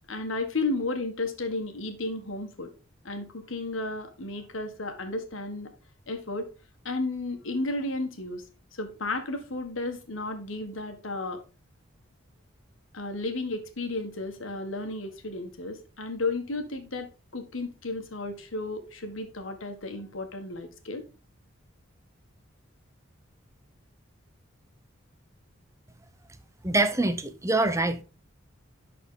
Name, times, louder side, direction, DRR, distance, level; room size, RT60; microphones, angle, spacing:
voice 1, 0.1-2.7 3.0-5.7 6.1-6.5 6.8-8.4 8.7-11.4 12.9-21.0, left 2 dB, 75° left, 1.6 m, -33 dB
voice 2, 26.6-28.0, right 2 dB, 15° right, 0.6 m, -25 dB
11.0 x 4.2 x 3.8 m
head